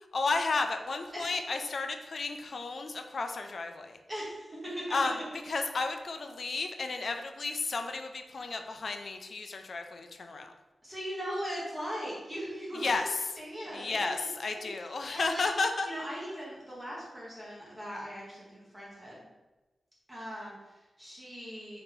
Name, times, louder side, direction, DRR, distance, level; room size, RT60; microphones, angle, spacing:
voice 1, 0.1-4.0 4.9-5.2 5.5-10.5 12.7-13.3 13.7-15.9, left 3 dB, 55° left, 6 dB, 0.4 m, -33 dB
voice 2, 4.1-4.9 10.8-14.7 15.1-15.4 15.8-19.2 20.1-21.8, equal, 15° right, -6 dB, 1.0 m, -40 dB
3.9 x 2.8 x 3.7 m, 1.1 s
wide cardioid pair, 155°, 0 cm